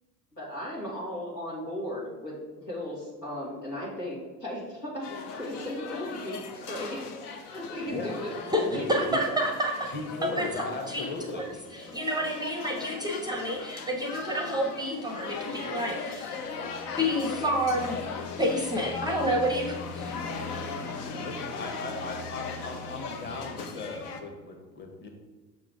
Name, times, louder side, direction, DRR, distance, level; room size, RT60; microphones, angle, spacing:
voice 1, 0.4-2.4 2.6-9.4, equal, 90° left, -5 dB, 2.0 m, -36 dB
sound 1, 5.0-24.2, left 5 dB, 70° left, 0.9 m, -38 dB
voice 2, 7.9-8.2 8.7-9.2 9.9-11.4 21.2-25.1, left 3 dB, 20° left, 2 dB, 1.2 m, -37 dB
voice 3, 8.9-9.9 10.2-10.5 10.9-11.0 11.3-11.4 11.7-16.4 17.0-18.0 18.4-20.1, equal, 10° right, 3 dB, 0.6 m, -29 dB
6.3 x 3.8 x 4.7 m, 1.3 s
figure-of-eight pair, 70°, 47 cm